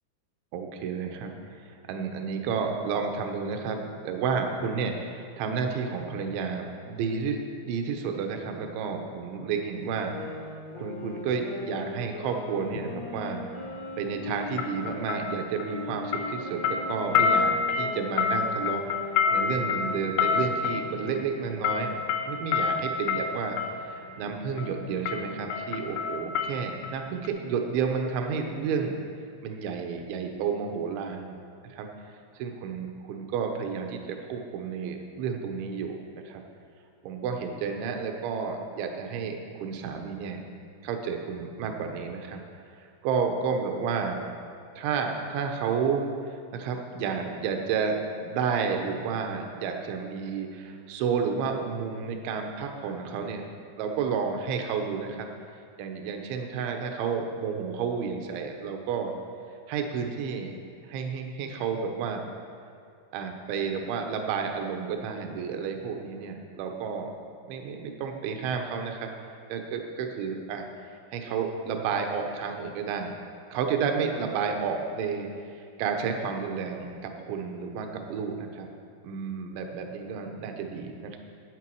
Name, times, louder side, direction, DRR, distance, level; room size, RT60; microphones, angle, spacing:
voice 1, 0.5-1.3 1.6-7.4 7.7-10.1 10.8-18.8 19.3-21.9 22.3-29.0 29.4-31.4 31.6-31.9 32.4-36.4 37.0-40.4 40.8-42.4 42.7-44.2 44.8-53.4 53.8-55.3 55.8-59.1 59.7-60.5 60.9-62.2 63.1-67.1 67.5-69.1 69.5-70.7 71.1-73.1 73.5-78.7 79.0-81.2, right 6 dB, 80° right, 4 dB, 3.2 m, -31 dB
sound 1, 9.9-15.2 15.6-21.3, left 2 dB, 60° left, 1.7 m, -40 dB
sound 2, 12.6-12.9 14.6-15.9 16.1-23.8 24.6-24.8 25.1-27.0 27.3-27.4, left 6 dB, 90° left, 3.3 m, -28 dB
14.5 x 9.2 x 4.7 m, 2.3 s
omnidirectional pair, 5.5 m